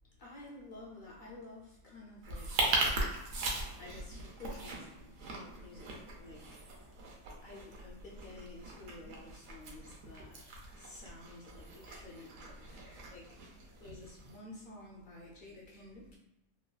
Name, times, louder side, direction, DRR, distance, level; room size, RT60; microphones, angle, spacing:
voice 1, 0.2-6.7 7.3-16.2, left 2 dB, 65° left, -3 dB, 0.5 m, -52 dB
sound 1, 2.2-14.4, right 2 dB, 90° right, 1.0 m, -39 dB
3.3 x 2.2 x 2.2 m, 0.92 s
omnidirectional pair, 1.3 m